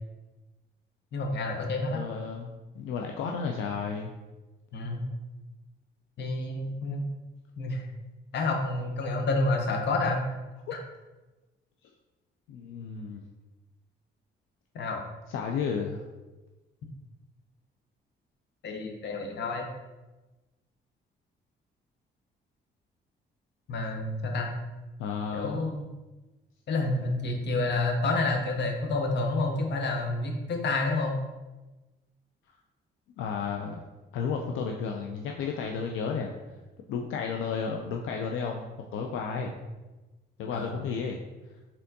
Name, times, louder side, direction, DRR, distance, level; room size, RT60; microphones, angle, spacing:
voice 1, 1.1-2.0 4.7-5.0 6.2-7.0 7.6-7.9 8.3-10.2 10.7-10.8 14.7-15.0 18.6-19.7 23.7-24.5 25.3-25.8 26.7-31.2 39.4-39.5 40.5-40.7, left 2 dB, 60° left, 3 dB, 0.8 m, -29 dB
voice 2, 1.9-2.5 2.7-4.1 10.7-10.8 12.5-13.2 15.3-16.0 25.0-25.6 33.2-33.8 34.1-36.3 36.9-38.7 38.9-39.5 40.4-41.2, left 6 dB, 85° left, 2 dB, 0.4 m, -32 dB
4.3 x 3.7 x 2.7 m, 1.1 s
cardioid pair, 90°, 20 cm